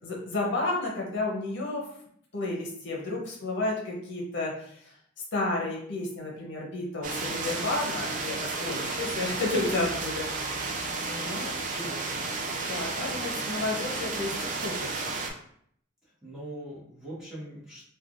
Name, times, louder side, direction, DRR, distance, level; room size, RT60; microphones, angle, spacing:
voice 1, 0.0-1.9 2.3-4.9 5.3-10.3 11.0-11.5 12.7-14.3 14.6-15.2, left 2 dB, 60° left, -2 dB, 0.7 m, -31 dB
sound 1, 7.0-15.3, right 3 dB, 40° right, 0.4 m, -32 dB
voice 2, 11.5-12.6 13.5-13.8 16.0-17.8, right 1 dB, 5° right, -9 dB, 1.1 m, -43 dB
3.3 x 2.2 x 2.4 m, 0.65 s
head